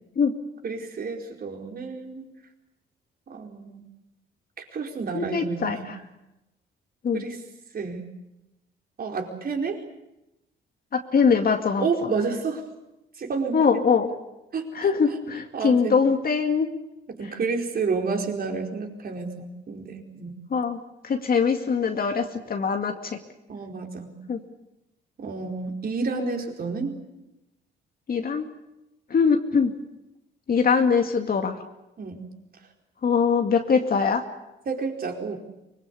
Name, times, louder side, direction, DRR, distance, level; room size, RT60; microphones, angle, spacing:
voice 1, 0.6-2.3 3.3-3.9 4.7-5.9 7.1-7.4 7.7-8.1 9.0-9.8 11.8-12.6 13.2-13.7 14.5-15.2 15.5-16.0 17.1-20.4 23.5-24.2 25.2-27.0 32.0-32.2 34.7-35.4, right 4 dB, 50° right, 2 dB, 4.7 m, -30 dB
voice 2, 5.1-6.0 7.0-7.2 10.9-11.9 13.5-14.1 14.7-16.7 20.5-23.2 24.3-24.4 26.1-26.4 28.1-28.5 29.1-29.7 30.5-31.6 33.0-34.2, left 5 dB, 50° left, 5 dB, 2.3 m, -22 dB
24.5 x 21.5 x 8.5 m, 0.92 s
cardioid pair, 90°, 20 cm